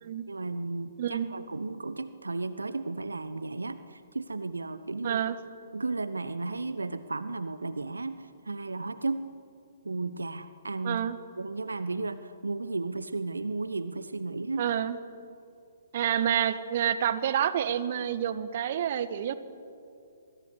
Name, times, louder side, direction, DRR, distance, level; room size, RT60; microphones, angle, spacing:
voice 1, 0.3-5.2 5.7-9.2 9.8-11.0 11.4-14.7, right 3 dB, 70° right, 13 dB, 1.1 m, -34 dB
voice 2, 5.0-5.4 10.8-11.2 14.6-15.0 15.9-19.3, right 9 dB, 40° right, 12 dB, 1.6 m, -28 dB
23.5 x 23.0 x 9.7 m, 2.5 s
figure-of-eight pair, 125°, 0 cm